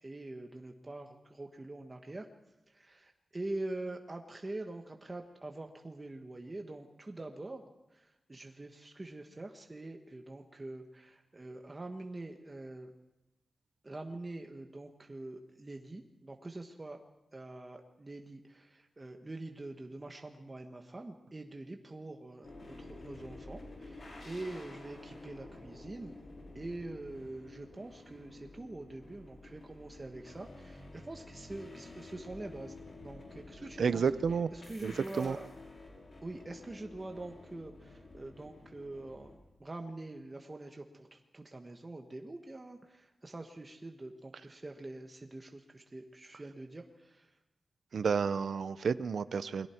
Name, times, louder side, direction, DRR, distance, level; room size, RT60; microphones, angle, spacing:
voice 1, 0.0-2.3 2.7-12.9 13.8-17.0 17.3-26.2 26.5-32.7 33.0-34.0 34.3-35.5 36.2-47.3, right 2 dB, 25° right, 3 dB, 1.4 m, -45 dB
sound 1, 22.4-39.4, left 2 dB, 50° left, 5.5 m, -51 dB
voice 2, 33.8-34.5 34.8-35.4 47.9-49.7, right 6 dB, 70° right, 13 dB, 0.7 m, -31 dB
29.0 x 22.0 x 4.5 m, 0.95 s
wide cardioid pair, 115°, 0 cm